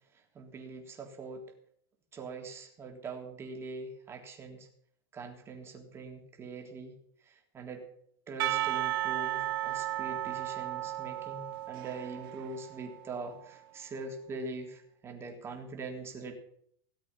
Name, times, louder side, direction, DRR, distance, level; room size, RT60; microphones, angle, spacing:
voice 1, 0.3-1.4 2.1-4.7 5.1-6.9 7.3-7.8 8.3-16.3, right 3 dB, 20° right, 2 dB, 3.4 m, -43 dB
Percussion / Church bell, 8.4-13.4, right 14 dB, 60° right, 0.6 m, -34 dB
17.5 x 8.0 x 8.8 m, 0.66 s
supercardioid pair, 145°, 13 cm